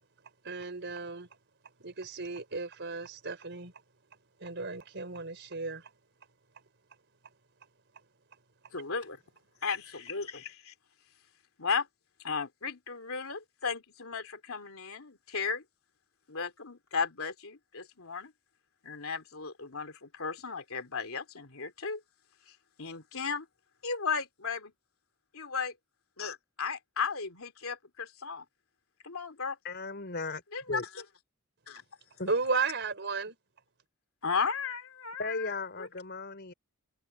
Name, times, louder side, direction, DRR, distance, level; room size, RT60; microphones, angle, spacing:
voice 1, 0.4-1.3 1.8-3.7 4.4-5.9 32.3-33.4, right 4 dB, 55° right, 4.3 m, -34 dB
voice 2, 8.7-9.2 9.6-10.7 11.6-11.9 12.2-15.6 16.3-18.3 18.8-22.0 22.8-23.4 23.8-24.7 25.3-25.7 26.2-28.4 29.0-29.6 30.5-30.8 31.7-31.8 34.2-35.9, left 5 dB, 75° left, 3.2 m, -35 dB
voice 3, 29.6-30.4 30.7-30.9 32.2-32.3 35.2-36.5, left 3 dB, 50° left, 4.1 m, -36 dB
head